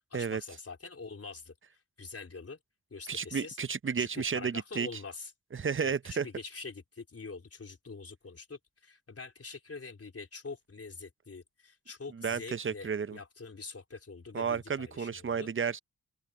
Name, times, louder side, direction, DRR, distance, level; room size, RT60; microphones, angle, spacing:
voice 1, 0.1-2.6 2.9-3.6 4.0-5.3 5.8-15.5, left 4 dB, 45° left, 4.2 m, -45 dB
voice 2, 3.1-4.9 5.6-6.3 12.2-13.2 14.3-15.8, right 6 dB, 40° right, 0.9 m, -32 dB
open air
supercardioid pair, 45°, 33 cm